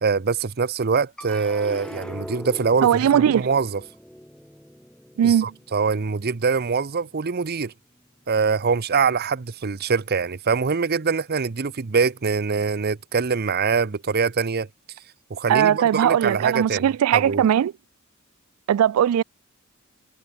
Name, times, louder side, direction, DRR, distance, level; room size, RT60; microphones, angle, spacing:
voice 1, 0.0-3.8 5.2-7.7 8.3-14.7 15.3-17.4, right 5 dB, 45° right, 0.7 m, -24 dB
sound 1, 1.2-7.6 8.1-8.7, equal, 5° left, 1.8 m, -42 dB
voice 2, 2.8-3.5 5.2-5.5 15.5-17.7 18.7-19.2, right 9 dB, 85° right, 0.3 m, -19 dB
head